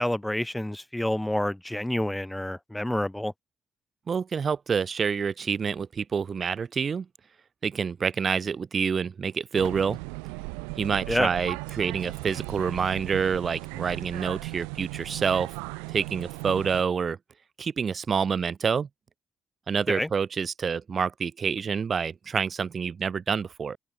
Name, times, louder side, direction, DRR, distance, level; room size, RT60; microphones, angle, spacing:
voice 1, 0.0-3.3 11.1-11.3 19.9-20.1, left 1 dB, 10° left, 0.5 m, -28 dB
voice 2, 4.1-7.1 7.6-10.0 10.8-15.5 15.9-17.2 17.6-18.9 19.7-23.8, right 6 dB, 50° right, 1.0 m, -27 dB
sound 1, 9.5-16.8, right 40 dB or more, 90° right, 0.5 m, -37 dB
open air
hypercardioid pair, 50°, 0 cm